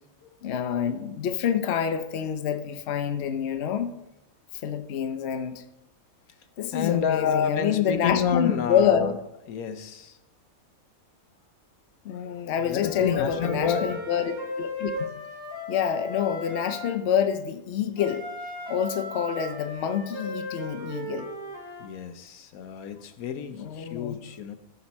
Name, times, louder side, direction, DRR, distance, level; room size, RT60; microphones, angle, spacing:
voice 1, 0.4-3.9 4.6-5.6 6.6-9.1 12.0-14.9 15.7-18.2 18.7-21.3 23.5-24.2, left 8 dB, 55° left, 0.9 m, -27 dB
voice 2, 6.7-9.1 9.5-10.2 12.6-14.0 21.8-24.5, left 8 dB, 80° left, 1.2 m, -29 dB
Wind instrument woodwind instrument, 12.8-17.0 18.0-21.9, equal, 45° right, 2.9 m, -36 dB
15.0 x 5.3 x 4.2 m
omnidirectional pair, 1.5 m